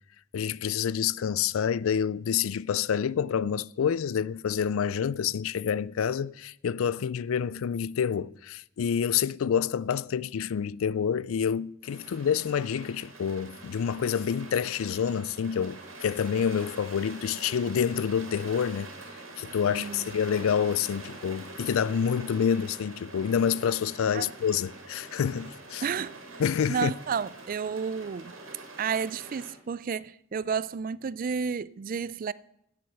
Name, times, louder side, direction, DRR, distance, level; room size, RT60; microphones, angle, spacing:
voice 1, 0.3-18.9 19.4-25.8 26.4-26.9, left 7 dB, 80° left, 0.4 m, -28 dB
sound 1, 11.8-29.5, right 2 dB, 70° right, 3.1 m, -45 dB
voice 2, 19.7-20.1 24.1-24.3 25.8-26.2 26.7-28.4 28.8-32.3, right 6 dB, 40° right, 0.3 m, -31 dB
11.5 x 7.8 x 7.9 m
head